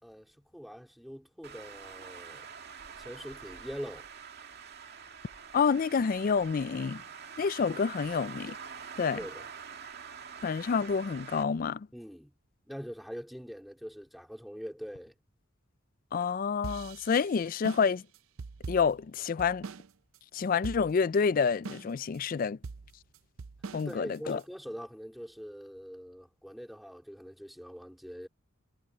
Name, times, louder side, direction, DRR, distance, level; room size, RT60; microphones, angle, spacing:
voice 1, 0.0-2.5 3.0-4.1 9.1-9.5 11.9-12.3 12.7-15.1 23.9-28.3, equal, ahead, 3.9 m, -43 dB
Traffic noise roadway noise, 1.4-11.4, right 6 dB, 50° right, 2.4 m, -46 dB
voice 2, 5.5-7.0 7.4-8.6 9.0-9.2 10.4-11.9 16.1-18.0 18.7-19.7 20.3-22.6 23.7-24.4, left 5 dB, 45° left, 0.3 m, -28 dB
sound 1, 16.6-19.9 20.1-20.2 20.6-21.2 21.6-22.2 22.6-24.4, right 4 dB, 85° right, 0.6 m, -42 dB
head